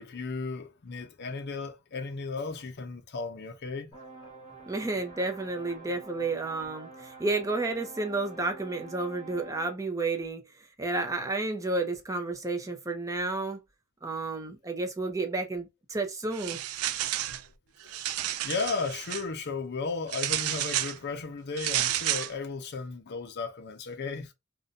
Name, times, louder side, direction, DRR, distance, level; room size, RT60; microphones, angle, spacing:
voice 1, 0.0-3.9 17.8-18.1 18.4-24.3, left 4 dB, 50° left, 0.5 m, -35 dB
sound 1, 3.9-9.7, right 3 dB, 20° left, 1.1 m, -47 dB
voice 2, 4.7-13.6 14.0-16.6, right 3 dB, 15° right, 0.5 m, -31 dB
sound 2, 16.3-17.4 17.8-19.2 20.1-21.0 21.6-22.3, right 12 dB, 85° right, 0.3 m, -31 dB
2.6 x 2.2 x 2.5 m
head